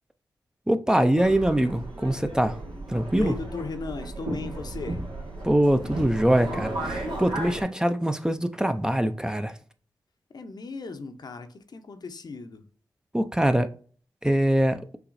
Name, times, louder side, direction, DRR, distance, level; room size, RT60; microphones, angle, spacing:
voice 1, 0.7-2.6 2.9-3.3 5.4-9.5 13.1-13.7 14.2-14.8, right 1 dB, 10° right, 0.5 m, -23 dB
Subway metro underground, 1.2-7.6, right 1 dB, 85° right, 1.8 m, -34 dB
voice 2, 3.1-5.0 10.3-12.6, left 4 dB, 60° left, 0.7 m, -36 dB
5.8 x 3.0 x 2.6 m
cardioid pair, 50°, 8 cm